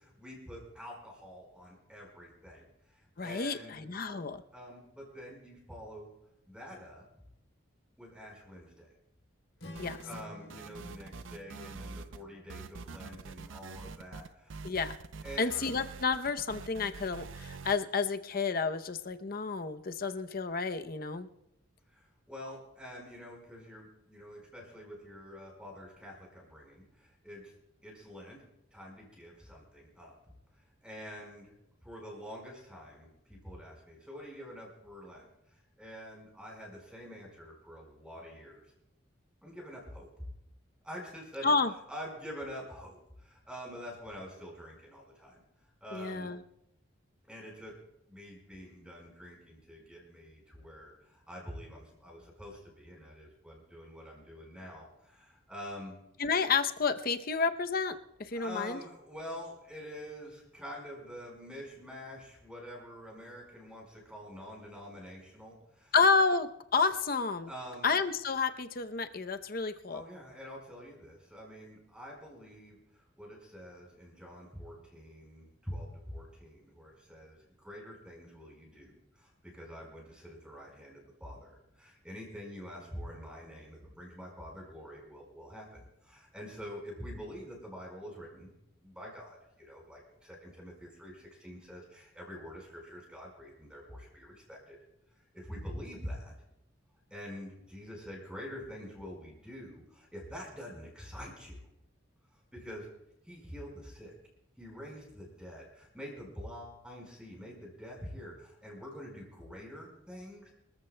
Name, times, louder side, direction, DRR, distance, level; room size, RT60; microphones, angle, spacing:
voice 1, 0.0-3.8 4.5-6.1 6.5-7.1 8.0-8.9 9.6-14.6 15.2-15.7 21.9-27.5 27.8-28.4 28.7-30.1 30.8-31.5 31.8-38.6 39.4-40.1 40.8-41.5 41.9-45.4 45.8-46.3 47.3-47.8 48.1-56.0 58.3-66.0 67.5-67.9 69.9-88.5 88.8-94.8 95.3-96.3 97.1-101.6 102.3-102.9 103.2-104.2 104.6-110.5, equal, 5° right, -2 dB, 4.6 m, -46 dB
voice 2, 3.2-4.4 9.8-10.0 14.6-15.0 15.4-21.3 41.4-41.7 45.9-46.4 56.2-57.9 58.2-58.8 65.9-67.5 67.8-70.0, left 4 dB, 45° left, 8 dB, 0.7 m, -30 dB
Strum, 9.6-13.9, left 1 dB, 75° left, 3.1 m, -52 dB
sound 1, 9.8-10.3 10.5-12.2 12.5-17.8, right 4 dB, 70° right, 0.5 m, -45 dB
26.0 x 14.0 x 2.2 m, 0.83 s
head